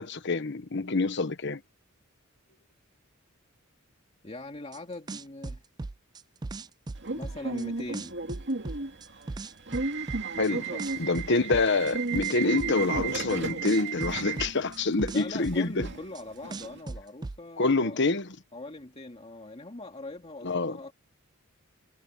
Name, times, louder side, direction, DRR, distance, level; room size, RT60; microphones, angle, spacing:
voice 1, 0.0-1.6 10.4-10.6 11.0-15.9 17.6-18.3 20.4-20.8, left 3 dB, 60° left, 1.3 m, -26 dB
voice 2, 4.2-5.6 7.2-8.1 10.3-11.1 15.1-18.0 18.5-20.9, left 2 dB, 30° left, 2.2 m, -41 dB
sound 1, 4.7-4.8 5.1-7.6 7.9-10.5 10.8-13.4 13.6-16.2 16.5-17.4, right 3 dB, 20° right, 0.4 m, -37 dB
Subway metro underground / Alarm, 7.0-16.8, right 4 dB, 60° right, 2.5 m, -34 dB
head